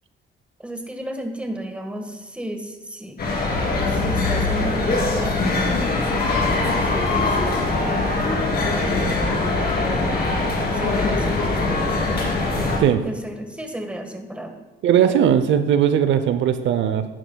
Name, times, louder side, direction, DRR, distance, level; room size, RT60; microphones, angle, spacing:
voice 1, 0.6-3.2 3.9-5.4 6.7-10.2 10.7-12.4 12.9-14.5 14.9-15.3, right 1 dB, 5° right, 4 dB, 1.5 m, -33 dB
sound 1, 3.2-12.8, left 3 dB, 50° left, 3.0 m, -22 dB
voice 2, 14.8-17.1, right 9 dB, 70° right, 10 dB, 0.6 m, -18 dB
11.0 x 10.0 x 2.3 m, 1.2 s
cardioid pair, 90°, 20 cm